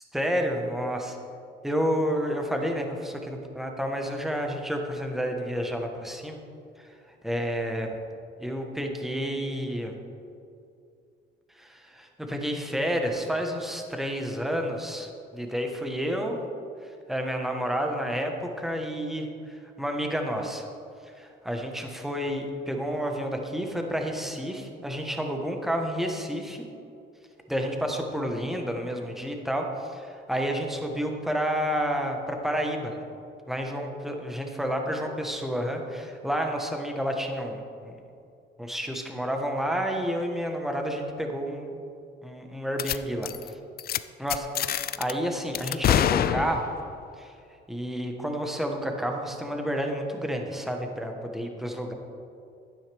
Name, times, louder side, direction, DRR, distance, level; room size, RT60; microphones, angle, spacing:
voice 1, 0.1-1.2 1.6-6.4 6.8-6.9 7.2-8.0 8.4-9.9 11.5-16.4 16.8-20.7 21.0-26.7 27.5-33.0 33.5-38.0 38.6-41.9 42.2-43.6 44.2-46.7 47.2-47.3 47.7-51.9, equal, ahead, 2 dB, 1.2 m, -30 dB
sound 1, 42.8-43.0 43.2-43.5 43.8-44.0 44.3-45.1 45.5-46.9, left 10 dB, 50° left, 0.4 m, -25 dB
11.5 x 9.4 x 3.5 m, 2.5 s
cardioid pair, 90°, 20 cm